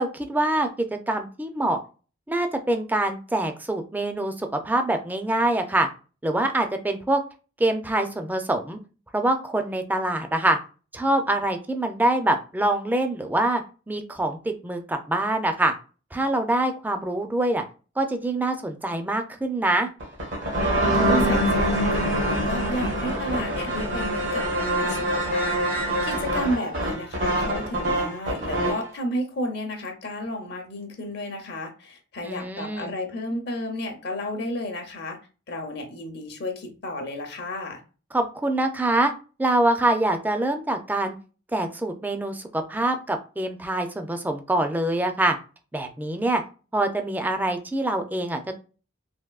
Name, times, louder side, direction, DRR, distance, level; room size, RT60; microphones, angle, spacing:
voice 1, 0.0-1.8 2.3-5.9 6.2-7.2 7.6-8.8 9.1-10.6 10.9-13.6 13.9-15.7 16.1-17.6 18.0-19.9 32.2-32.9 38.1-39.1 39.4-41.2 41.5-45.4 45.7-46.4 46.7-48.6, right 1 dB, 10° right, 6 dB, 0.4 m, -25 dB
sound 1, 20.0-28.9, right 1 dB, 85° right, 1.5 m, -24 dB
voice 2, 21.0-35.2 35.5-37.8, equal, 60° left, 4 dB, 0.7 m, -32 dB
3.5 x 2.6 x 2.3 m, 0.34 s
head